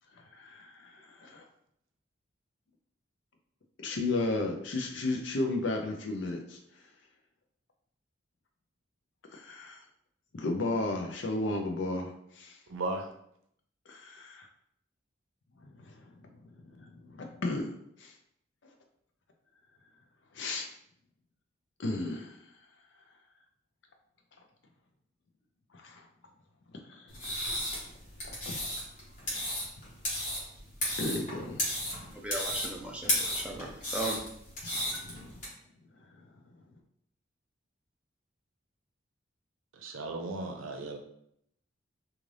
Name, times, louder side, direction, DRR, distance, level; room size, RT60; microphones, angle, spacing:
voice 1, 0.2-1.4 3.8-6.6 9.3-9.8 10.3-12.6 13.9-14.5 15.6-17.7 18.0-18.1 20.3-20.7 21.8-22.4 25.7-26.0 26.8-27.1 28.2-28.6 31.0-31.6 34.8-35.3, left 2 dB, 65° left, 3 dB, 0.6 m, -34 dB
voice 2, 12.7-13.1 39.7-41.0, right 2 dB, 85° right, 5 dB, 0.6 m, -36 dB
sound 1, 27.1-35.5, left 1 dB, 40° left, 1.3 m, -34 dB
voice 3, 32.2-34.2 34.9-35.1, right 2 dB, 5° right, 0 dB, 0.4 m, -37 dB
3.8 x 2.5 x 3.2 m, 0.73 s
head